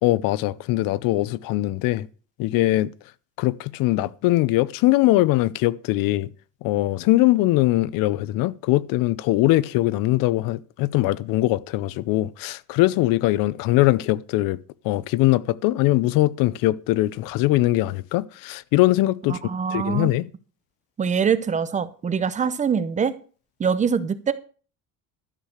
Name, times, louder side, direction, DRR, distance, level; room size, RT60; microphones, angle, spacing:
voice 1, 0.0-2.1 2.4-2.9 3.4-6.3 6.6-14.6 14.8-19.4 19.7-20.3, left 17 dB, 85° left, 0.7 m, -21 dB
voice 2, 19.3-20.2 21.0-23.1 23.6-24.3, right 6 dB, 20° right, 0.7 m, -24 dB
12.5 x 6.6 x 6.5 m
cardioid pair, 165°, 33 cm